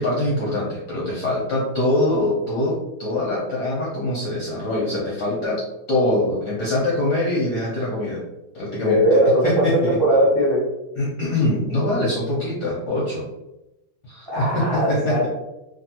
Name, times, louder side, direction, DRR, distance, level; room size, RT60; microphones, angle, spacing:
voice 1, 0.0-8.2 8.5-10.0 11.0-13.3 14.0-15.3, left 1 dB, 65° left, -4 dB, 1.0 m, -23 dB
voice 2, 8.7-10.6 14.3-15.3, equal, 35° right, -7 dB, 0.4 m, -19 dB
3.4 x 2.4 x 2.7 m, 0.96 s
omnidirectional pair, 2.4 m